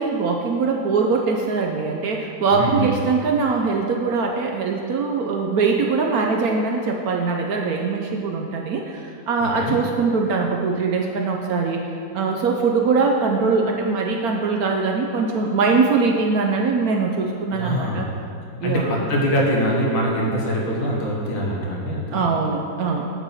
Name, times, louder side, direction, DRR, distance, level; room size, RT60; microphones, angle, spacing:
voice 1, 0.0-11.8 12.1-18.1 18.6-19.0 22.1-23.0, right 4 dB, 65° right, 1 dB, 0.9 m, -22 dB
voice 2, 2.5-2.9 9.4-9.8 17.5-18.1 18.6-22.3, equal, 90° left, -3 dB, 2.1 m, -23 dB
8.8 x 7.2 x 4.1 m, 2.4 s
omnidirectional pair, 2.1 m